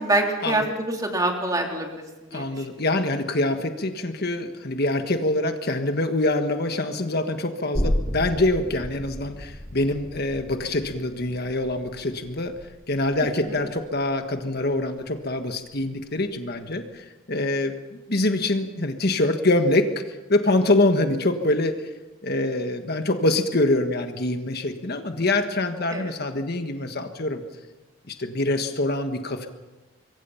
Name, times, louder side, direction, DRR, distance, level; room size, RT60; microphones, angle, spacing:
voice 1, 0.0-2.0 2.3-2.4 25.9-26.0, right 2 dB, 20° right, 2 dB, 3.3 m, -25 dB
voice 2, 2.3-12.5 12.9-21.9 22.2-27.4 28.1-29.5, left 2 dB, 50° left, 7 dB, 1.5 m, -25 dB
sound 1, 7.7-15.0 15.4-15.5, equal, 25° left, 5.5 m, -33 dB
26.0 x 22.5 x 5.8 m, 1.1 s
head